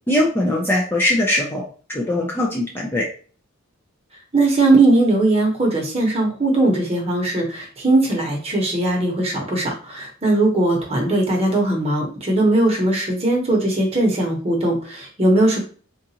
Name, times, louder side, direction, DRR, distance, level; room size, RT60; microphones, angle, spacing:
voice 1, 0.1-1.6 1.9-3.1, left 1 dB, 10° left, -2 dB, 0.4 m, -21 dB
voice 2, 4.3-15.6, right 2 dB, 30° right, -1 dB, 0.9 m, -19 dB
3.8 x 2.4 x 2.8 m, 0.41 s
head